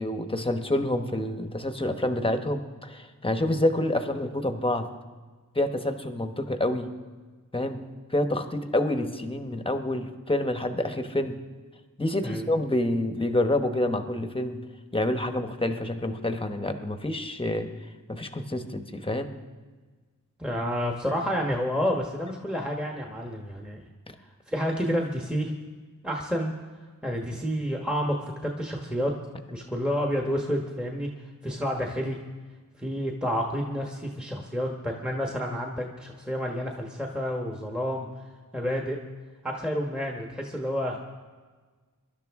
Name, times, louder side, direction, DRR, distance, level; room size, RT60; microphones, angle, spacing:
voice 1, 0.0-4.9 5.5-6.9 7.5-7.8 8.1-11.4 12.0-14.6 14.9-17.7 18.1-19.3, left 1 dB, 15° left, 7 dB, 1.0 m, -27 dB
voice 2, 20.4-23.8 24.5-25.5 26.0-26.5 27.0-29.1 29.5-31.1 31.4-32.2 32.8-38.1 38.5-39.0 39.4-41.0, equal, 5° right, 1 dB, 1.2 m, -29 dB
23.0 x 12.0 x 3.6 m, 1.4 s
wide cardioid pair, 85°, 33 cm